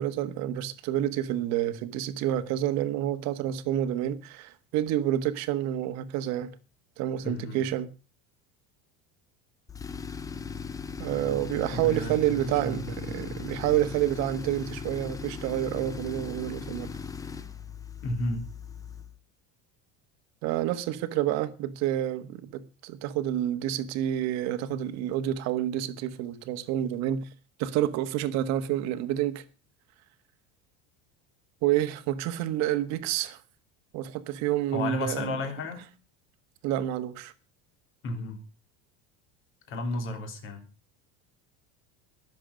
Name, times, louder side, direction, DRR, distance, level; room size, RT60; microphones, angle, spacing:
voice 1, 0.0-6.5 7.0-7.9 11.0-16.9 20.4-27.3 27.6-29.4 31.6-33.4 33.9-35.4 36.6-37.3, right 12 dB, 55° right, 1.5 m, -29 dB
voice 2, 7.2-7.6 11.7-12.2 12.6-13.4 18.0-18.4 34.7-35.9 38.0-38.4 39.7-40.6, left 2 dB, 40° left, 3.4 m, -33 dB
Tools, 9.7-19.2, left 6 dB, 10° left, 0.6 m, -38 dB
22.0 x 7.4 x 5.2 m
cardioid pair, 165°, 32 cm